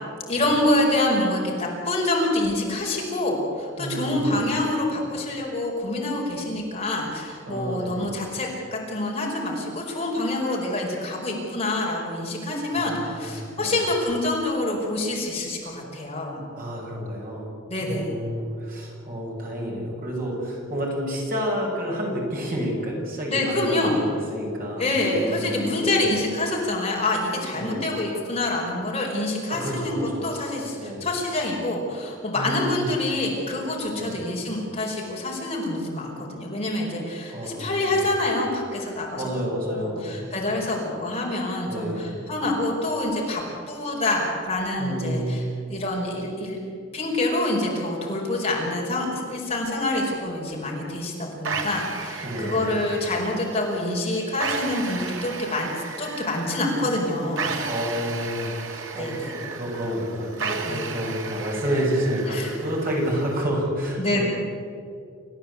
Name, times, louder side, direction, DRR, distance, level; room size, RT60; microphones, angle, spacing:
voice 1, 0.3-16.4 17.7-18.1 23.3-24.0 24.8-39.3 39.7-43.4 43.7-45.4 45.7-46.6 46.9-55.7 56.0-57.6 59.0-59.3 60.7-60.8 62.3-62.5 64.0-64.2, left 2 dB, 30° left, -2 dB, 5.2 m, -26 dB
voice 2, 3.8-4.5 7.5-8.1 12.7-13.8 16.6-17.5 17.8-26.1 27.5-27.9 29.5-30.3 30.8-31.1 32.3-32.9 33.9-34.2 37.3-38.0 39.1-40.3 41.6-42.2 44.8-45.5 52.2-52.8 57.6-64.2, equal, 45° right, -2 dB, 6.8 m, -30 dB
sound 1, 51.4-63.4, right 5 dB, 70° right, 2.2 m, -34 dB
28.5 x 15.0 x 8.5 m, 2.4 s
head